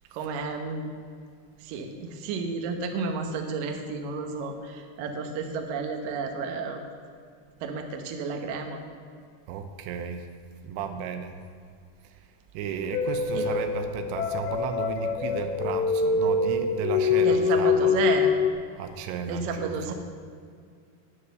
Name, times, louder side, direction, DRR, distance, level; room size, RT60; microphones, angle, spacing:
voice 1, 0.1-0.9 1.6-6.8 7.6-8.8 13.3-13.5 17.2-18.3 19.3-19.9, right 4 dB, 70° right, 4 dB, 2.3 m, -31 dB
voice 2, 9.5-10.3 10.6-11.4 12.0-12.2 12.5-18.0 18.8-19.9, right 6 dB, 90° right, 7 dB, 3.1 m, -34 dB
sound 1, 12.9-18.5, left 5 dB, 80° left, 3.0 m, -25 dB
9.7 x 9.7 x 6.7 m, 2.2 s
omnidirectional pair, 5.1 m